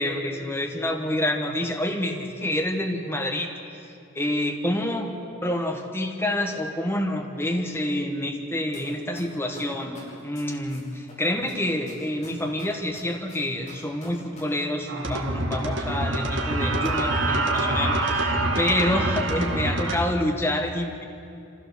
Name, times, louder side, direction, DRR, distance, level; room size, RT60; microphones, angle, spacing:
voice 1, 0.0-3.5 4.1-5.1 5.4-21.0, left 1 dB, 10° left, 2 dB, 1.4 m, -27 dB
sound 1, 8.7-8.8 9.1-11.1 11.5-14.4 14.7-14.8, left 2 dB, 35° left, 6.1 m, -46 dB
sound 2, 14.9-20.0, right 2 dB, 60° right, 1.9 m, -25 dB
25.5 x 15.5 x 6.9 m, 2.6 s
head